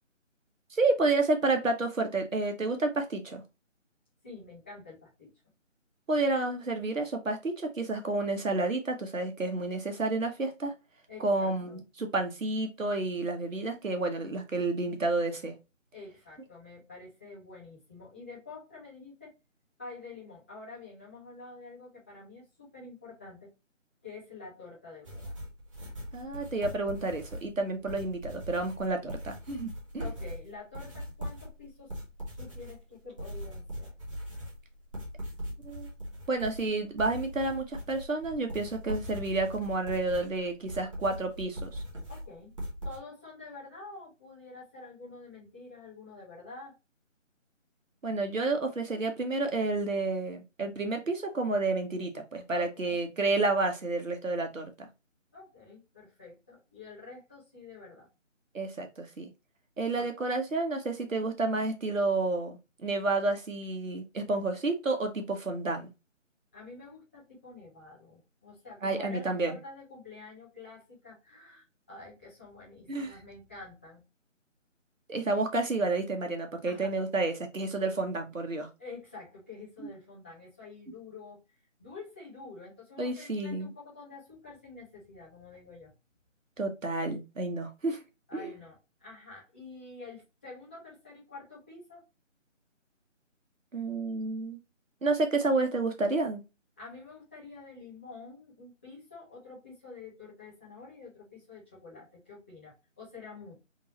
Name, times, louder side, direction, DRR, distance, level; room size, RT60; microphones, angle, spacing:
voice 1, 0.7-3.4 6.1-10.7 11.2-15.5 26.1-30.0 35.6-35.9 36.3-41.8 48.0-54.9 58.5-59.3 59.8-65.9 68.8-69.6 72.9-73.1 75.1-78.7 83.0-83.7 86.6-88.0 88.3-88.5 93.7-94.6 95.0-96.4, right 2 dB, 80° right, 1.3 m, -30 dB
voice 2, 4.2-5.3 11.1-11.8 15.9-19.3 19.8-23.5 24.0-25.3 30.0-31.9 32.3-33.9 42.1-42.5 42.8-46.7 52.5-52.9 55.3-58.1 60.0-60.1 66.5-74.0 76.6-76.9 78.8-81.4 81.8-85.9 88.3-92.0 96.8-103.6, left 3 dB, 10° left, 0.9 m, -48 dB
sound 1, 25.0-43.0, equal, 25° right, 1.0 m, -40 dB
3.6 x 3.1 x 2.8 m
figure-of-eight pair, 165°, 38 cm